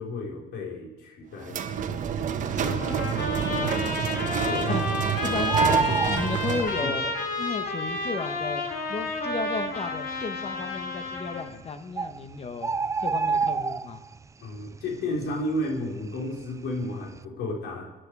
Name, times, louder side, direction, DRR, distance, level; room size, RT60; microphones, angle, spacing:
voice 1, 0.0-2.1 4.5-4.7 5.8-6.0 6.8-6.9 14.4-17.9, left 1 dB, 80° left, 0 dB, 4.8 m, -33 dB
sound 1, 1.5-6.9, right 8 dB, 50° right, 1.3 m, -28 dB
voice 2, 2.5-4.1 4.7-4.8 5.2-8.6 8.9-12.7 13.0-14.0, left 4 dB, 35° left, 8 dB, 1.6 m, -34 dB
Trumpet, 2.6-11.5, left 2 dB, 60° left, 3.9 m, -31 dB
Bird, 2.7-3.1 3.5-3.6 3.8-5.0 5.3-7.1 8.0-8.1 8.7-8.8 9.0-9.1 9.8-10.2 11.2-11.3 11.6-11.7 12.0-14.2 14.6-14.9 15.2-16.6 16.9-17.2, right 4 dB, 20° right, 0.4 m, -28 dB
25.0 x 11.0 x 5.0 m, 1.1 s
cardioid pair, 110°, 17 cm